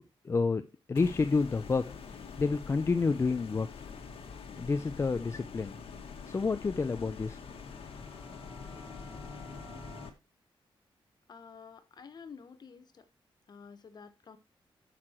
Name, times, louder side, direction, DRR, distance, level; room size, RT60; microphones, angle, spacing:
voice 1, 0.2-0.6 0.9-3.7 4.6-5.8 6.3-7.4, left 4 dB, 30° left, 0.5 m, -29 dB
sound 1, 0.9-10.1, left 5 dB, 80° left, 1.8 m, -45 dB
sound 2, 7.5-10.1, left 1 dB, 10° right, 5.4 m, -50 dB
voice 2, 11.3-13.1 13.5-14.4, left 6 dB, 45° left, 1.2 m, -50 dB
10.0 x 6.6 x 4.4 m
wide cardioid pair, 135°, 10 cm